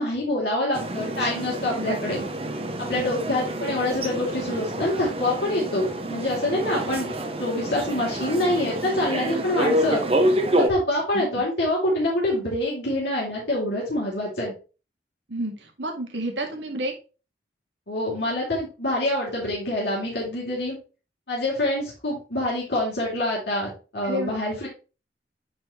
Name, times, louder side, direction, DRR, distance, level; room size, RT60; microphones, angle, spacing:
voice 1, 0.0-2.2 2.8-7.1 7.4-10.0 10.6-14.5 17.9-20.8 21.3-24.7, left 1 dB, 65° left, -6 dB, 3.7 m, -26 dB
sound 1, 0.7-10.7, right 1 dB, 30° right, 1.1 m, -27 dB
voice 2, 15.3-16.9 24.0-24.3, right 1 dB, 80° right, 3 dB, 2.1 m, -30 dB
9.5 x 4.4 x 3.3 m, 0.33 s
head